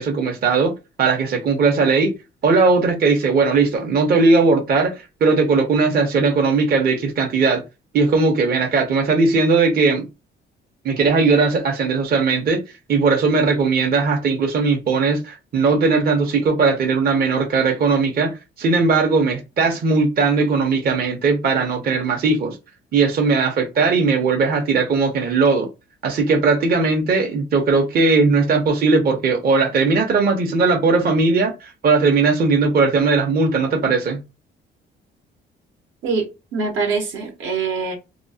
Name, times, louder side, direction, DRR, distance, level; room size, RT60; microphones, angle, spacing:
voice 1, 0.0-2.1 2.4-7.6 7.9-10.1 10.8-12.6 12.9-22.6 22.9-25.7 26.0-34.2, right 4 dB, 50° right, 0.7 m, -18 dB
voice 2, 36.0-37.9, right 4 dB, 80° right, 0.9 m, -24 dB
2.8 x 2.0 x 2.7 m
cardioid pair, 90°, 20 cm